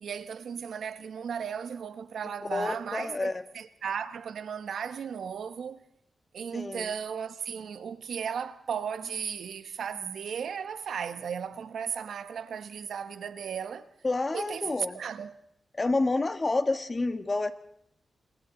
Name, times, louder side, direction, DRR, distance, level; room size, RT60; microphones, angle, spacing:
voice 1, 0.0-5.8 6.3-13.9 14.3-15.3, right 7 dB, 90° right, 1.1 m, -35 dB
voice 2, 2.4-3.4 6.5-6.9 14.0-15.0 15.7-17.5, left 2 dB, 35° left, 1.6 m, -29 dB
28.5 x 25.5 x 4.0 m
cardioid pair, 80°, 0 cm